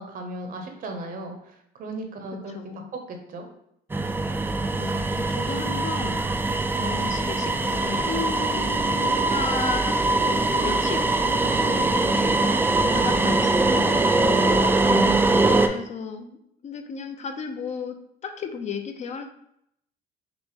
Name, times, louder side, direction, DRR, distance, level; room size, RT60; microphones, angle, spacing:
voice 1, 0.0-2.5 2.9-3.5 14.9-15.4, right 1 dB, 55° right, 4 dB, 0.9 m, -35 dB
voice 2, 2.5-2.9 4.8-6.3 6.7-12.4 12.9-14.1 15.4-16.4 16.6-18.0 18.2-19.3, left 6 dB, 40° left, 7 dB, 0.6 m, -34 dB
sound 1, 3.9-15.7, right 2 dB, 10° right, 0.3 m, -22 dB
5.9 x 2.1 x 3.4 m, 0.75 s
cardioid pair, 110°, 17 cm